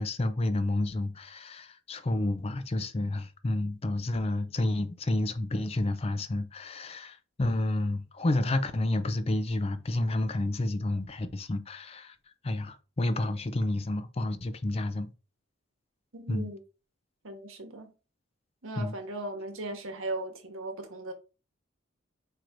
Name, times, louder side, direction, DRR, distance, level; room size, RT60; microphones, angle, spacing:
voice 1, 0.0-12.2 12.4-15.1 16.3-16.5 18.8-18.9, left 1 dB, 30° left, 0.4 m, -30 dB
voice 2, 16.1-16.6 17.2-17.9 18.6-21.1, right 2 dB, 90° right, 1.2 m, -37 dB
4.5 x 4.5 x 2.6 m
head